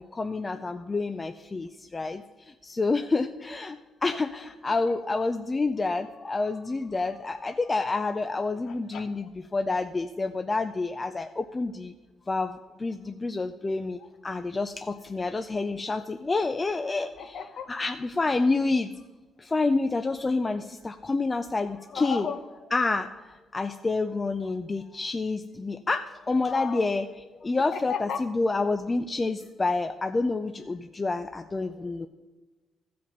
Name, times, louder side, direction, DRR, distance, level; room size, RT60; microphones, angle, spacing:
voice 1, 0.0-11.9 12.3-17.4 17.7-18.9 19.4-22.3 22.7-27.1 27.4-32.1, left 3 dB, 25° left, 8 dB, 0.4 m, -28 dB
voice 2, 8.7-9.3 17.0-17.7 21.9-22.7 25.9-26.0 26.4-26.9 27.7-28.2, left 7 dB, 65° left, 9 dB, 0.9 m, -36 dB
15.0 x 5.1 x 5.3 m, 1.2 s
cardioid pair, 90°, 0 cm